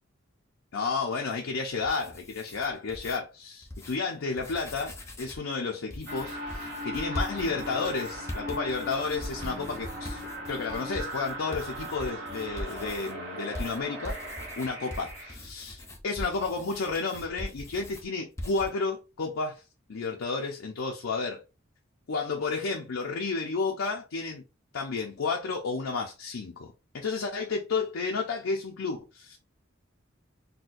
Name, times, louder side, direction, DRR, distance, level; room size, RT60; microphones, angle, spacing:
voice 1, 0.7-14.2 14.6-19.6 19.9-21.4 22.1-24.4 24.7-29.4, left 4 dB, 80° left, 0.5 m, -32 dB
sound 1, 1.7-3.2 3.6-4.0 4.3-5.5 5.9-13.1 13.5-18.0 18.4-18.7, left 1 dB, 15° left, 0.6 m, -41 dB
sound 2, 6.1-15.3, equal, 70° right, 1.2 m, -38 dB
4.1 x 2.2 x 2.4 m
head